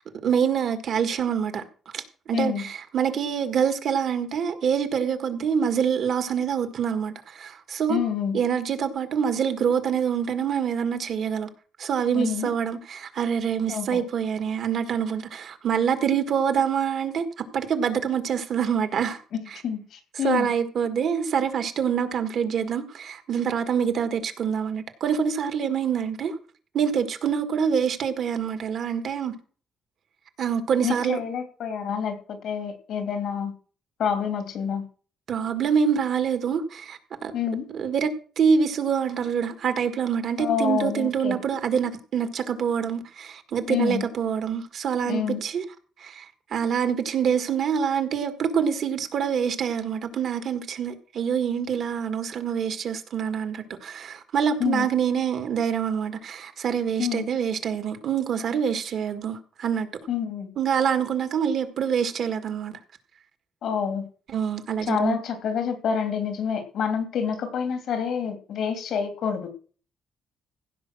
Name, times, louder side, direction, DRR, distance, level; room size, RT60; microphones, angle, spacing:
voice 1, 0.2-1.6 1.9-8.0 8.3-11.5 11.8-17.3 17.5-19.2 20.2-26.3 26.7-29.3 30.4-31.2 35.3-37.3 37.7-45.6 46.0-59.9 60.6-62.7 64.3-65.2, right 7 dB, 65° right, 1.8 m, -26 dB
voice 2, 2.3-2.6 7.9-8.4 12.1-12.5 13.7-14.0 19.3-20.5 30.8-33.5 34.0-34.9 37.3-37.7 40.4-41.4 43.6-44.1 45.0-45.4 54.6-54.9 57.0-57.3 60.1-60.5 63.6-64.1 64.8-69.5, left 7 dB, 75° left, 2.9 m, -27 dB
16.0 x 5.4 x 6.2 m
cardioid pair, 90°, 0 cm